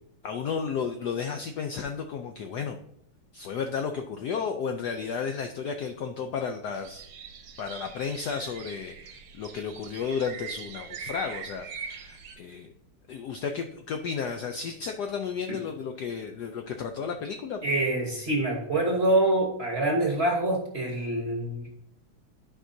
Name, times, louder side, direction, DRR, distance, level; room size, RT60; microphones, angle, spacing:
voice 1, 0.2-2.8 3.3-7.0 7.6-12.7 13.1-17.7, left 6 dB, 75° left, 6 dB, 0.9 m, -33 dB
sound 1, 6.7-12.3, right 6 dB, 60° right, 1.2 m, -42 dB
voice 2, 17.6-21.7, right 1 dB, 40° right, 1 dB, 1.0 m, -25 dB
12.5 x 5.0 x 2.7 m, 0.75 s
omnidirectional pair, 2.3 m